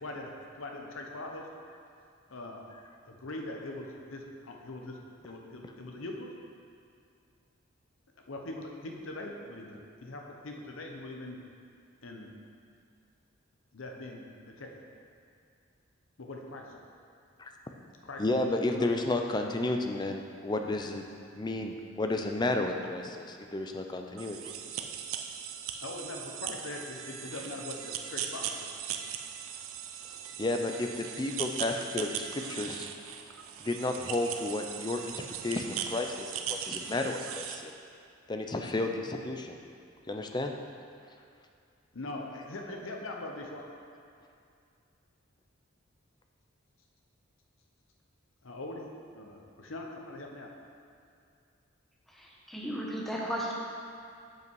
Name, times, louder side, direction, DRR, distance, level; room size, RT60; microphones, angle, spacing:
voice 1, 0.0-1.4 2.3-2.7 3.1-5.0 5.2-6.3 8.2-11.4 12.0-12.3 13.7-14.7 16.2-16.8 18.0-18.9 25.8-28.7 41.9-43.6 48.4-48.9 49.1-50.5, left 2 dB, 80° left, 1 dB, 0.8 m, -42 dB
voice 2, 18.2-21.0 21.4-24.4 30.4-32.9 33.6-37.7 38.3-39.6 40.1-40.5, left 2 dB, 20° left, 4 dB, 0.4 m, -32 dB
sound 1, 24.2-37.6, right 8 dB, 90° right, 0.5 m, -39 dB
voice 3, 52.1-53.5, equal, ahead, -4 dB, 0.9 m, -35 dB
7.5 x 5.6 x 4.7 m, 2.4 s
head